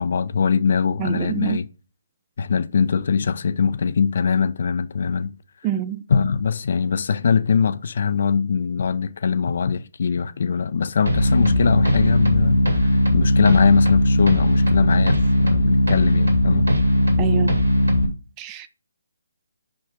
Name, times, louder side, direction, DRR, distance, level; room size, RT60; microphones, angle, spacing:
voice 1, 0.0-1.7 2.4-5.3 6.1-16.7, left 6 dB, 55° left, 0.7 m, -22 dB
voice 2, 1.0-1.6 5.6-6.0 17.2-17.6 18.4-18.7, right 10 dB, 20° right, 0.5 m, -26 dB
sound 1, 11.1-18.1, left 1 dB, 90° right, 2.3 m, -18 dB
5.7 x 5.3 x 3.7 m
figure-of-eight pair, 145°, 0 cm